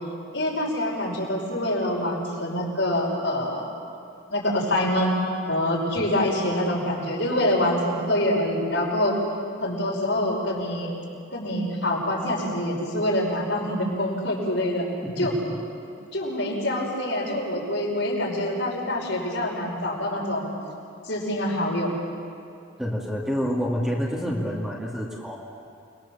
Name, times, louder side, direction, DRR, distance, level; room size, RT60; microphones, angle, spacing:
voice 1, 0.3-3.7 4.3-5.2 5.5-9.1 9.6-10.9 11.3-14.9 15.2-15.3 16.1-20.5 21.1-21.9, left 1 dB, 65° left, -2 dB, 5.7 m, -25 dB
voice 2, 22.8-25.5, equal, 5° right, -3 dB, 2.5 m, -28 dB
29.0 x 22.0 x 7.3 m, 2.7 s
head